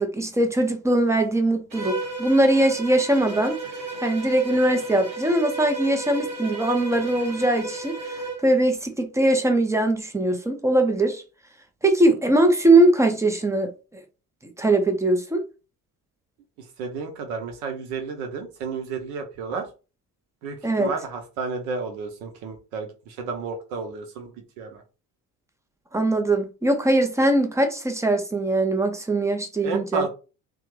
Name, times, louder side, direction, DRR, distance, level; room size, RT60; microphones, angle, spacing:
voice 1, 0.0-3.6 4.0-8.0 8.4-11.2 11.8-14.0 14.6-15.4 20.6-20.9 25.9-30.1, right 1 dB, 5° right, 0.5 m, -21 dB
Bowed string instrument, 1.7-8.5, right 3 dB, 90° right, 0.8 m, -33 dB
voice 2, 16.8-19.7 20.4-24.3 24.6-24.8 29.6-30.1, right 5 dB, 65° right, 1.0 m, -31 dB
3.3 x 2.4 x 3.1 m
figure-of-eight pair, 50°, 50 cm